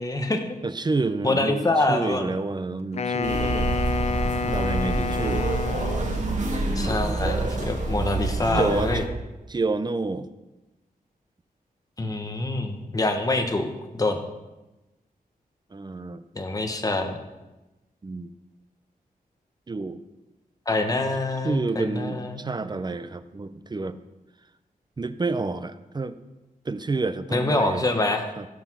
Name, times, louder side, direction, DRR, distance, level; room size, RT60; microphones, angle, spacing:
voice 1, 0.0-0.6 1.2-2.3 6.7-9.0 12.0-14.2 16.3-17.2 20.7-22.4 27.3-28.2, left 2 dB, 25° left, 4 dB, 1.2 m, -25 dB
voice 2, 0.6-3.7 4.4-5.4 6.1-7.0 8.5-9.0 9.5-10.3 15.7-16.2 18.0-18.3 19.7-20.0 21.4-24.0 25.0-26.2 26.7-27.9 28.4-28.5, right 3 dB, 30° right, 12 dB, 0.6 m, -29 dB
Wind instrument woodwind instrument, 2.9-6.4, left 5 dB, 45° left, 0.5 m, -29 dB
sound 1, 3.2-9.1, right 2 dB, 50° right, 1.9 m, -27 dB
15.5 x 6.1 x 6.1 m, 1.0 s
wide cardioid pair, 145°, 15 cm